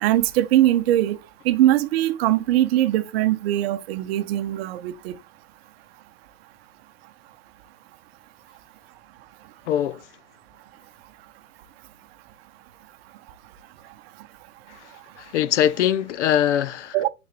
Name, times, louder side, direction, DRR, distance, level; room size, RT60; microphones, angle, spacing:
voice 1, 0.0-1.2 1.4-5.2 16.9-17.1, right 13 dB, 40° right, 0.8 m, -21 dB
voice 2, 9.7-10.1 14.7-17.0, left 10 dB, 50° left, 0.5 m, -23 dB
10.0 x 4.0 x 3.0 m
hypercardioid pair, 115°, 46 cm